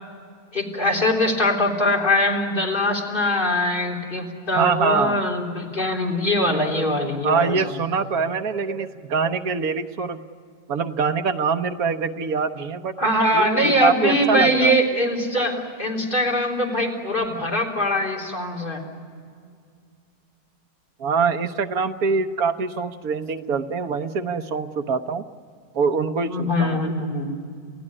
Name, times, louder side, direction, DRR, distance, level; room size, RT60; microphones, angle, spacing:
voice 1, 0.5-7.7 13.0-18.8 26.3-27.3, left 1 dB, 30° left, 0 dB, 3.8 m, -22 dB
voice 2, 4.6-5.3 6.5-10.2 10.7-14.8 21.0-25.2 25.7-26.9, right 5 dB, 60° right, 7 dB, 1.4 m, -24 dB
28.5 x 16.5 x 9.9 m, 2.2 s
omnidirectional pair, 1.8 m